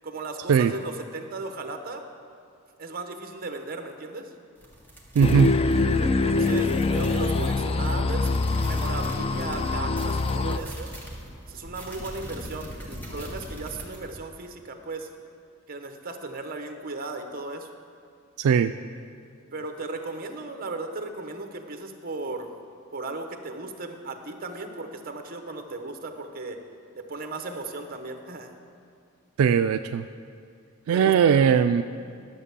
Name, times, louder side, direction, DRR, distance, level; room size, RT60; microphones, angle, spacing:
voice 1, 0.0-2.0 2.8-4.3 6.0-8.3 8.6-10.9 11.5-15.1 15.7-17.7 19.5-22.5 22.9-26.6 26.9-28.5 30.9-31.2, right 3 dB, 40° right, 5 dB, 0.9 m, -36 dB
sound 1, 4.6-14.2, equal, 10° left, 1.5 m, -41 dB
sound 2, 5.2-10.6, left 3 dB, 25° left, 0.3 m, -24 dB
voice 2, 5.2-5.5 18.4-18.7 29.4-30.0 30.9-31.8, right 7 dB, 80° right, 9 dB, 0.3 m, -19 dB
11.5 x 7.3 x 6.8 m, 2.4 s
head